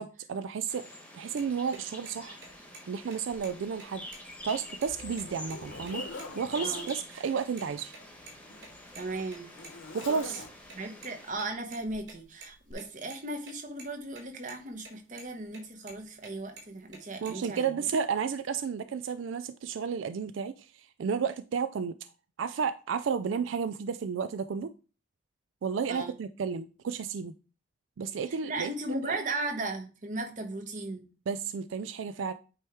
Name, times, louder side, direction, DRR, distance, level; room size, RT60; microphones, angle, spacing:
voice 1, 0.0-4.0 4.4-7.9 9.9-10.4 17.2-22.1 22.4-24.7 25.6-27.3 28.0-28.7 29.1-29.2 31.3-32.3, right 6 dB, 80° right, 0.4 m, -32 dB
sound 1, 0.7-11.3, left 1 dB, 10° left, 1.2 m, -46 dB
sound 2, 1.4-1.5 1.7-1.8 2.1-2.2 2.4-2.8 3.1-3.2 3.4-3.5 3.8-4.9 5.1-5.2 5.5-5.6 5.9-6.2 6.5-7.0 7.2-8.3 8.6-11.1 11.4-13.2 13.5-13.6 13.8-14.2 14.5-14.9 15.2-16.3 16.6-17.3, right 3 dB, 65° right, 3.5 m, -48 dB
Zipper (clothing), 3.3-3.4 4.0-7.0 7.9-10.9 11.9-12.1 12.7-12.8, left 2 dB, 75° left, 1.0 m, -45 dB
voice 2, 8.9-9.5 10.7-17.7 25.9-26.1 28.3-31.0, right 2 dB, 40° right, 1.2 m, -36 dB
8.8 x 3.0 x 4.6 m
head